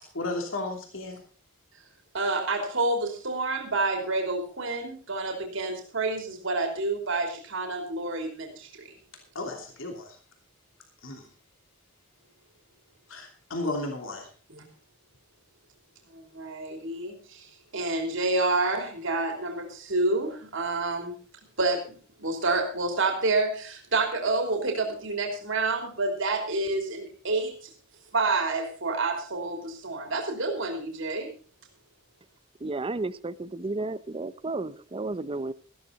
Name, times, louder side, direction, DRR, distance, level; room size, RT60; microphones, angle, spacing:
voice 1, 0.1-1.2 9.3-10.2 11.0-11.3 13.1-14.3, left 2 dB, 75° left, 2.9 m, -34 dB
voice 2, 2.1-8.7 14.5-14.6 16.1-21.1 21.6-21.8 22.2-27.7 28.1-31.3, right 3 dB, 70° right, 3.1 m, -28 dB
voice 3, 32.6-35.5, right 2 dB, 25° right, 0.6 m, -32 dB
14.5 x 13.0 x 4.1 m
head